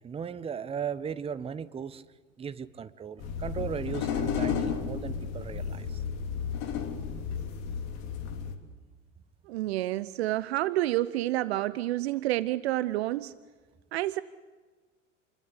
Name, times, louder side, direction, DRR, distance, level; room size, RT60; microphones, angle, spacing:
voice 1, 0.0-2.0 2.4-6.0, right 7 dB, 15° right, 15 dB, 1.0 m, -37 dB
sound 1, 3.2-8.5, left 7 dB, 45° left, 3.4 m, -33 dB
voice 2, 9.5-13.3 13.9-14.2, right 16 dB, 55° right, 17 dB, 0.9 m, -29 dB
29.0 x 22.0 x 8.4 m, 1.4 s
figure-of-eight pair, 85°, 38 cm